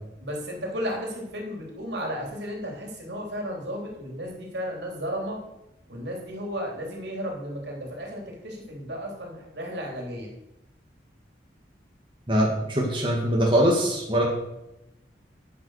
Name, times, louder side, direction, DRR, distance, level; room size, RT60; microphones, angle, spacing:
voice 1, 0.2-5.4 5.9-10.3, equal, 65° right, 0 dB, 3.3 m, -34 dB
voice 2, 12.3-14.2, equal, 25° right, -2 dB, 1.9 m, -22 dB
11.0 x 8.3 x 6.4 m, 0.90 s
head